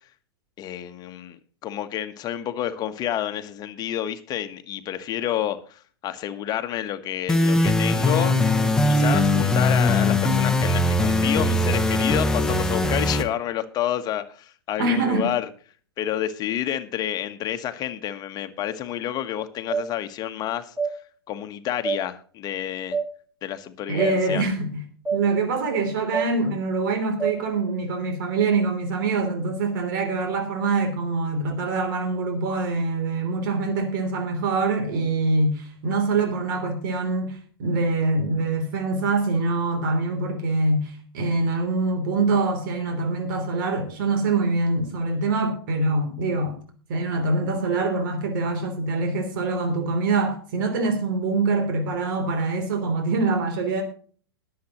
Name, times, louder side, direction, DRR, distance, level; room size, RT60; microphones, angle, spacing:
voice 1, 0.6-8.3 8.9-15.5 16.0-20.7 21.3-23.0 23.4-24.4, left 11 dB, 30° left, 1.3 m, -29 dB
sound 1, 7.3-13.2, left 2 dB, 5° left, 1.2 m, -20 dB
voice 2, 14.8-15.3 23.9-24.8 25.1-46.6 46.9-53.8, right 3 dB, 55° right, 3.2 m, -24 dB
sound 2, 19.7-19.9 20.8-20.9 21.8-22.0 22.9-23.1 24.0-24.1 25.1-25.2 26.1-26.3 27.2-27.4, right 5 dB, 15° right, 5.0 m, -25 dB
21.5 x 7.7 x 3.0 m
hypercardioid pair, 105°, 13 cm